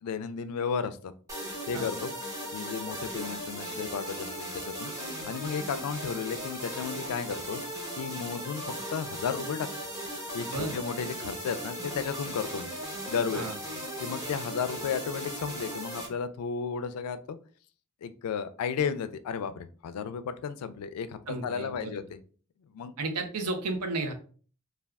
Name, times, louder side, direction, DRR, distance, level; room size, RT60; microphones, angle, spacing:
voice 1, 0.0-1.0 1.7-2.1 2.5-4.9 5.3-7.6 8.0-9.7 10.3-12.7 13.1-13.5 14.0-17.4 18.0-22.2 22.7-22.9, left 6 dB, 85° left, 12 dB, 0.3 m, -33 dB
sound 1, 1.3-16.1, equal, 15° right, 0.7 m, -37 dB
voice 2, 21.3-22.0 23.0-24.1, right 3 dB, 90° right, 6 dB, 0.6 m, -33 dB
3.4 x 2.3 x 2.2 m, 0.42 s
head